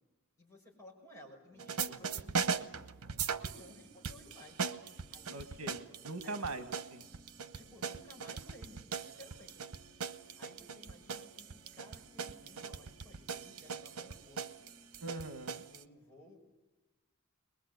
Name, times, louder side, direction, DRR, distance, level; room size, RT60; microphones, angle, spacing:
voice 1, 0.4-2.8 3.4-4.7 5.1-5.6 6.2-6.4 7.5-9.6 10.4-11.5 11.7-14.4 15.7-16.5, left 1 dB, 15° left, -2 dB, 6.1 m, -56 dB
sound 1, 1.5-15.6, equal, 10° right, 4.4 m, -64 dB
sound 2, 1.6-3.7 4.0-15.8, right 6 dB, 90° right, 1.0 m, -39 dB
voice 2, 5.3-7.0 15.0-15.6, right 3 dB, 70° right, 8 dB, 1.7 m, -42 dB
22.0 x 21.5 x 8.1 m, 1.2 s
head